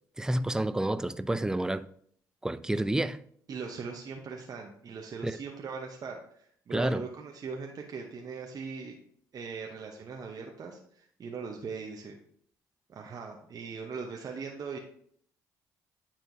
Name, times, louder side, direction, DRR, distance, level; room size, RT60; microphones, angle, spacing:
voice 1, 0.2-1.9 2.4-3.2 5.2-5.4 6.7-7.0, right 1 dB, 5° right, 0.4 m, -29 dB
voice 2, 3.5-9.0 9.3-12.2 12.9-14.8, right 5 dB, 45° right, 0.8 m, -40 dB
9.0 x 4.3 x 2.7 m
hypercardioid pair, 50°, 9 cm